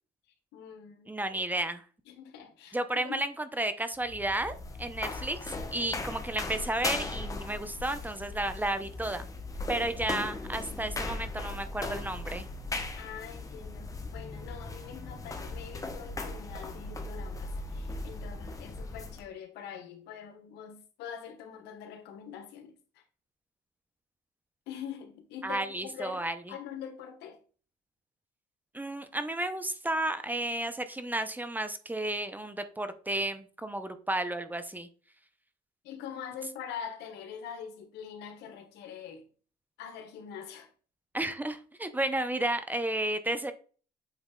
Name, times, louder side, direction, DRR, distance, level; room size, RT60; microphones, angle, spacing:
voice 1, 0.5-1.2 2.1-3.2 9.7-9.9 13.0-23.0 24.7-26.2 26.5-27.4 35.8-39.2 39.8-40.7, left 8 dB, 85° left, 1.2 m, -44 dB
voice 2, 1.1-1.8 2.7-9.3 9.7-12.5 25.4-26.5 28.7-34.9 41.1-43.5, right 1 dB, 10° right, 0.6 m, -32 dB
sound 1, 3.9-19.2, left 2 dB, 20° left, 0.9 m, -38 dB
8.1 x 3.2 x 3.7 m
cardioid pair, 110°, 17 cm